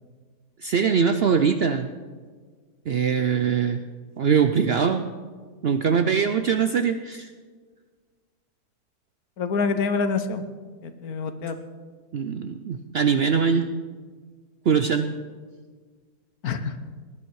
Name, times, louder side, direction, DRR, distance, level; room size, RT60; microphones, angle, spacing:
voice 1, 0.6-1.9 2.9-3.8 4.2-5.0 5.6-7.3 12.1-13.7 14.7-15.1, right 6 dB, 60° right, 8 dB, 0.6 m, -22 dB
voice 2, 9.4-10.4 10.8-11.6 16.4-16.7, left 4 dB, 75° left, 9 dB, 1.4 m, -26 dB
19.0 x 11.0 x 4.7 m, 1.5 s
omnidirectional pair, 1.6 m